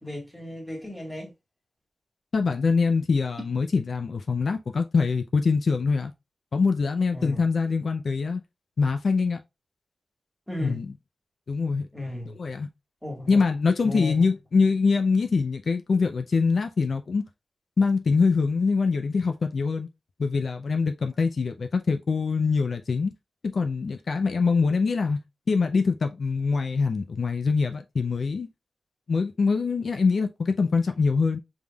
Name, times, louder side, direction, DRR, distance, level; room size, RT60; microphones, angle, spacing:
voice 1, 0.0-1.3 7.1-7.4 10.5-10.9 11.9-12.4 13.0-13.4 13.8-14.3, left 1 dB, 5° left, 1.5 m, -35 dB
voice 2, 2.3-6.1 6.5-8.4 8.8-9.4 10.6-10.8 11.5-11.9 12.4-12.7 13.3-17.2 17.8-19.9 20.2-23.1 23.4-25.2 25.5-28.5 29.1-31.4, left 4 dB, 60° left, 0.4 m, -24 dB
5.2 x 3.5 x 2.2 m
wide cardioid pair, 125°, 0 cm